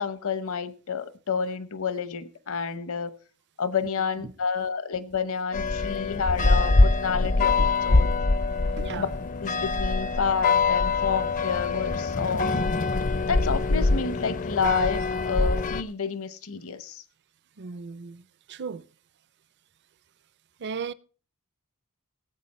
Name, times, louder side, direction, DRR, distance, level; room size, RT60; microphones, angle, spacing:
voice 1, 0.0-3.2 3.6-7.6 7.8-8.1 8.9-9.1 9.4-12.5 13.3-17.0, left 5 dB, 65° left, 0.9 m, -29 dB
sound 1, 5.5-15.8, left 3 dB, 35° left, 0.5 m, -24 dB
voice 2, 8.8-9.1 17.6-18.2 18.5-18.8 20.6-20.9, right 5 dB, 50° right, 0.5 m, -35 dB
18.0 x 8.2 x 4.2 m
head